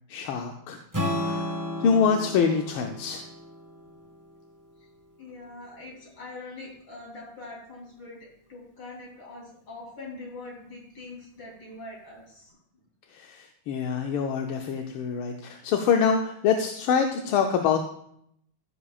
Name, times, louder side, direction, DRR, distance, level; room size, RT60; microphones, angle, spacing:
voice 1, 0.1-0.8 1.2-1.5 1.8-3.2 13.1-17.8, left 6 dB, 85° left, 4 dB, 1.6 m, -25 dB
Strum, 0.9-5.1, left 1 dB, 10° right, 1.5 m, -33 dB
voice 2, 5.2-8.2 8.5-12.5, left 2 dB, 50° left, -5 dB, 4.0 m, -43 dB
15.0 x 6.9 x 2.4 m, 0.70 s
omnidirectional pair, 2.3 m